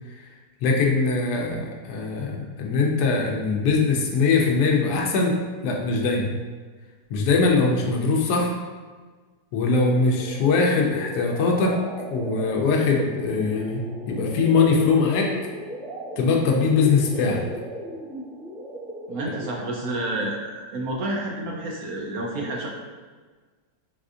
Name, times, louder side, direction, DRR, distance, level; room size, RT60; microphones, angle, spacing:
voice 1, 0.6-5.4 5.6-6.3 7.1-8.6 9.5-11.8 12.1-15.3 16.2-17.4, left 4 dB, 75° left, 0 dB, 1.1 m, -21 dB
sound 1, 9.8-19.7, equal, 5° right, 0.8 m, -36 dB
voice 2, 19.1-20.4 20.7-22.7, right 1 dB, 70° right, -2 dB, 0.9 m, -29 dB
4.1 x 2.5 x 2.4 m, 1.4 s
omnidirectional pair, 1.8 m